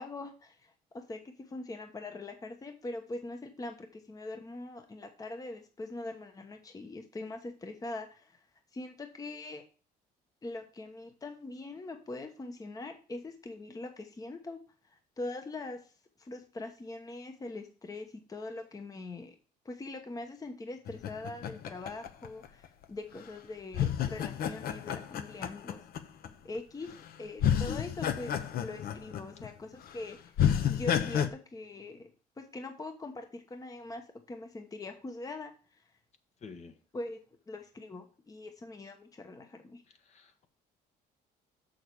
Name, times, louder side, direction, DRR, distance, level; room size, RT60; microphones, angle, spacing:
voice 1, 0.0-8.4 8.7-9.6 10.4-14.6 14.8-15.9 16.2-19.3 19.6-25.8 26.4-30.3 30.7-32.1 32.4-34.0 34.3-35.5 36.9-37.2 37.5-39.8, left 2 dB, 20° left, 5 dB, 1.1 m, -42 dB
sound 1, 20.9-22.8 23.7-26.3 26.9-27.1 27.4-29.5 29.8-29.9 30.4-31.3, left 9 dB, 65° left, 0.9 m, -30 dB
voice 2, 36.4-36.8 39.9-40.5, left 5 dB, 40° left, 7 dB, 1.2 m, -50 dB
6.7 x 6.4 x 4.7 m, 0.37 s
cardioid pair, 110°, 17 cm